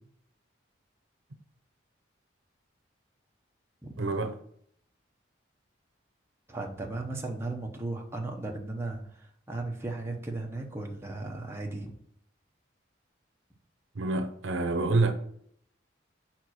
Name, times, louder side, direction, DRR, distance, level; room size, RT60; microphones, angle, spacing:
voice 1, 4.0-4.3 13.9-15.1, right 3 dB, 80° right, 0.8 m, -27 dB
voice 2, 6.5-11.9, right 2 dB, 15° right, 0.9 m, -36 dB
5.4 x 4.5 x 6.3 m
head